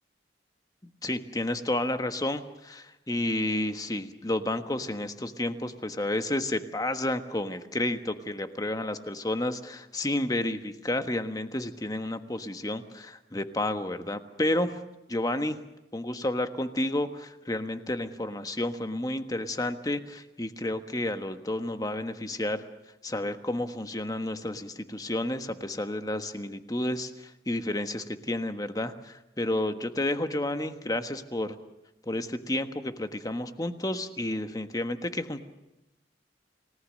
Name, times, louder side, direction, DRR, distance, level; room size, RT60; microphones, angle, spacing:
voice 1, 1.0-14.8 15.1-15.6 15.9-22.7 23.0-31.6 32.1-35.4, left 1 dB, 20° left, 8 dB, 1.4 m, -31 dB
30.0 x 18.5 x 6.5 m, 0.96 s
head